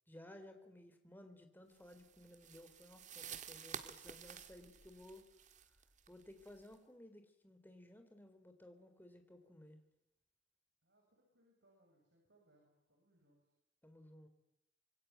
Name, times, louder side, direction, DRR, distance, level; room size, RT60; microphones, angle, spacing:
voice 1, 0.1-5.2 6.1-9.8 13.8-14.3, left 1 dB, 10° left, 7 dB, 3.5 m, -58 dB
sound 1, 1.8-6.7, right 7 dB, 40° right, 1.7 m, -52 dB
voice 2, 10.8-13.5, right 1 dB, 65° right, 0 dB, 7.2 m, -73 dB
26.0 x 22.0 x 9.4 m, 0.87 s
head